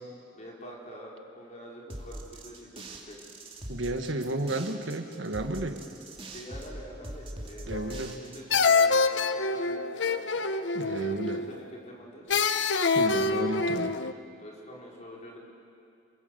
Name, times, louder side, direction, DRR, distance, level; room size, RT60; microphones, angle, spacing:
voice 1, 0.3-3.2 6.3-10.4 10.9-12.4 14.4-15.4, equal, 35° left, -2 dB, 4.9 m, -46 dB
sound 1, 1.9-8.7, right 1 dB, 30° right, 2.5 m, -42 dB
voice 2, 3.7-5.8 7.7-8.1 10.7-11.4 12.9-14.0, right 1 dB, 90° right, 7 dB, 1.6 m, -32 dB
sound 2, 7.7-8.2 8.5-11.6 12.3-14.1, left 4 dB, 75° left, 0.8 m, -26 dB
28.0 x 22.0 x 8.1 m, 2.5 s
head